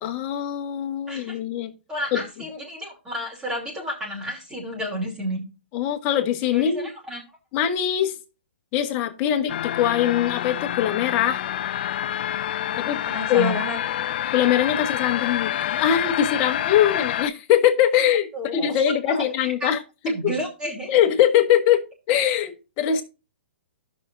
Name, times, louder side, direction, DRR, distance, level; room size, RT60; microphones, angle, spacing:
voice 1, 0.0-1.7 2.1-2.2 5.7-6.9 7.5-8.1 8.7-11.4 12.8-13.0 13.3-13.6 14.3-20.3 20.9-23.0, left 10 dB, 35° left, 1.4 m, -22 dB
voice 2, 1.1-1.4 1.9-5.4 6.5-7.2 12.7-13.8 18.3-19.7 20.1-20.9, equal, 15° right, 2.8 m, -31 dB
sound 1, 9.5-17.3, left 11 dB, 55° left, 0.4 m, -27 dB
14.5 x 6.1 x 2.6 m
hypercardioid pair, 130°, 6 cm